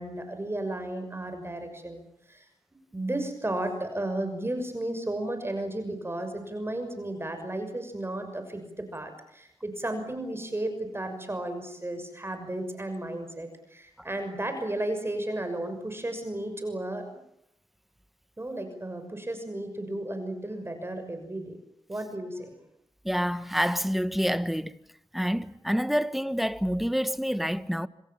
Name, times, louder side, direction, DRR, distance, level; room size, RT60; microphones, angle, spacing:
voice 1, 0.0-2.5 2.9-17.2 18.4-21.6 21.9-22.5, right 1 dB, 25° right, 6.2 m, -34 dB
voice 2, 23.0-24.8 25.1-27.9, equal, ahead, 1.3 m, -27 dB
26.5 x 26.0 x 7.3 m
cardioid pair, 60°, 10 cm